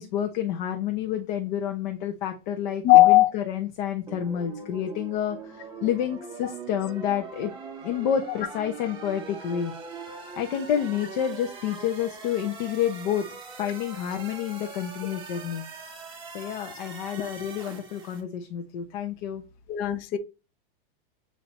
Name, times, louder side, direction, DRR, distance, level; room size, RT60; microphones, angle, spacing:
voice 1, 0.0-7.5 7.8-9.7 10.4-15.6 16.3-19.4, left 9 dB, 55° left, 1.0 m, -29 dB
voice 2, 2.8-3.3 19.7-20.2, left 16 dB, 30° left, 0.6 m, -16 dB
sound 1, 4.1-18.2, right 4 dB, 15° right, 1.6 m, -42 dB
8.7 x 2.9 x 4.2 m
supercardioid pair, 155°, 29 cm